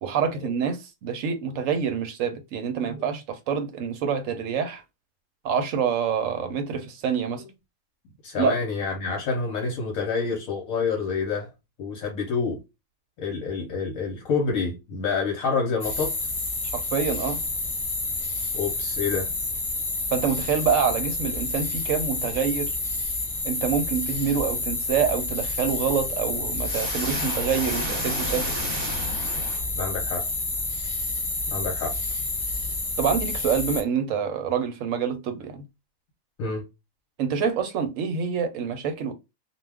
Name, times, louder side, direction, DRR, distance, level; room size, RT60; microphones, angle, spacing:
voice 1, 0.0-4.8 5.4-7.4 8.4-8.6 16.7-17.4 20.1-22.7 23.4-28.5 33.0-35.6 37.2-39.1, right 7 dB, 70° right, 0.9 m, -26 dB
voice 2, 8.2-11.5 11.8-12.6 13.2-16.1 18.5-19.3 29.8-30.3 31.5-31.9 36.4-36.6, left 5 dB, 75° left, 1.1 m, -27 dB
sound 1, 15.8-33.8, left 3 dB, 60° left, 0.3 m, -29 dB
sound 2, 26.6-30.0, right 1 dB, 45° right, 1.0 m, -33 dB
2.4 x 2.3 x 3.3 m
omnidirectional pair, 1.5 m